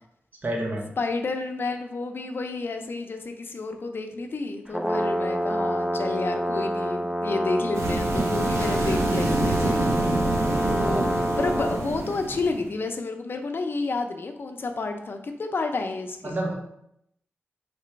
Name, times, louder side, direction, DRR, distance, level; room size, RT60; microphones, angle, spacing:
voice 1, 0.4-0.9 10.8-11.1 16.2-16.5, right 1 dB, 40° right, 0 dB, 0.7 m, -29 dB
voice 2, 1.0-9.8 10.7-11.1 11.4-16.4, left 3 dB, 55° left, 5 dB, 0.5 m, -30 dB
Brass instrument, 4.7-11.8, equal, 10° right, 0.4 m, -27 dB
sound 1, 7.7-12.7, right 2 dB, 90° right, 0.6 m, -27 dB
3.3 x 2.9 x 4.5 m, 0.77 s
wide cardioid pair, 100°, 5 cm